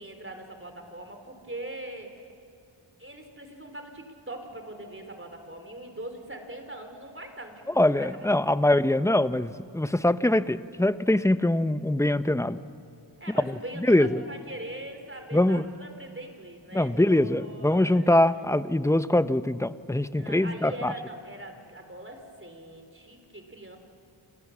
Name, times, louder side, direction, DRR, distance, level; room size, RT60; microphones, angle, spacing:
voice 1, 0.0-2.3 3.0-8.7 13.2-18.5 20.2-23.8, right 1 dB, 25° right, 5 dB, 4.0 m, -42 dB
voice 2, 7.8-12.6 13.9-14.2 15.3-15.6 16.7-20.9, left 1 dB, 5° left, 12 dB, 0.7 m, -23 dB
29.0 x 27.5 x 7.3 m, 2.5 s
wide cardioid pair, 75°, 47 cm